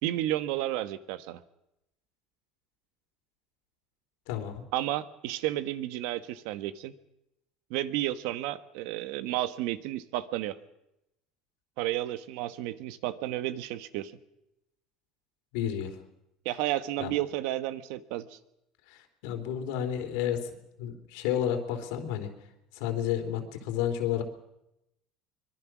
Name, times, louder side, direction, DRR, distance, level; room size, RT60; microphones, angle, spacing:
voice 1, 0.0-1.4 4.7-6.9 7.7-10.6 11.8-14.1 16.4-18.4, right 14 dB, 75° right, 13 dB, 1.3 m, -32 dB
voice 2, 4.3-4.6 15.5-16.0 17.0-17.1 18.9-20.5 20.8-22.3 22.7-24.2, left 10 dB, 80° left, 6 dB, 3.6 m, -31 dB
24.5 x 22.0 x 6.2 m, 0.86 s
cardioid pair, 135°, 0 cm